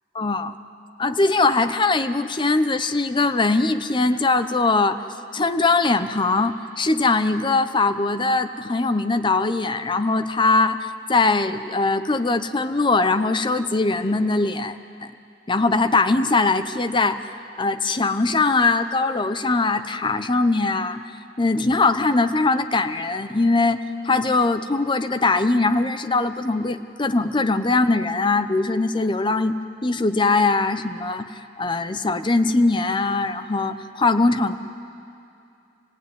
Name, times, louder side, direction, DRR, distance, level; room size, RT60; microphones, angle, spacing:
voice 1, 0.1-0.5 1.0-5.0 5.3-14.8 15.0-15.1 15.5-17.2 17.6-21.0 21.4-29.5 29.8-31.3 31.6-34.6, left 3 dB, 25° left, 9 dB, 0.8 m, -21 dB
26.0 x 18.0 x 9.4 m, 2.6 s
head